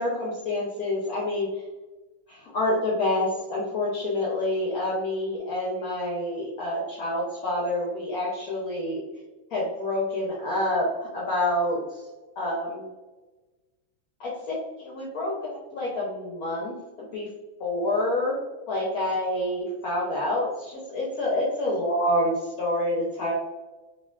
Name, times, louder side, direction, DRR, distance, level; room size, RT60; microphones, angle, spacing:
voice 1, 0.0-1.5 2.3-9.0 9.5-11.8 12.4-12.9 14.2-15.3 15.7-17.3 17.6-18.4 18.7-23.3, left 1 dB, 70° left, -5 dB, 0.8 m, -27 dB
3.3 x 2.4 x 2.2 m, 1.2 s
omnidirectional pair, 2.2 m